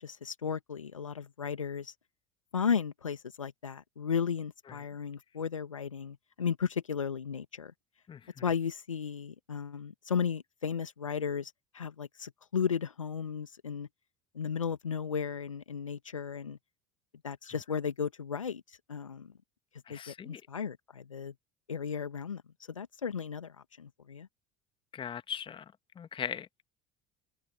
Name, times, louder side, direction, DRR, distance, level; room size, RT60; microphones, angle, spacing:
voice 1, 0.0-1.9 2.5-7.7 8.4-13.9 14.4-16.6 17.2-18.6 18.9-19.3 19.9-21.3 21.7-22.4 22.7-24.3, left 6 dB, 85° left, 1.6 m, -35 dB
voice 2, 19.9-20.4 24.9-25.6 26.0-26.5, left 8 dB, 30° left, 1.5 m, -39 dB
open air
figure-of-eight pair, 65°, 16 cm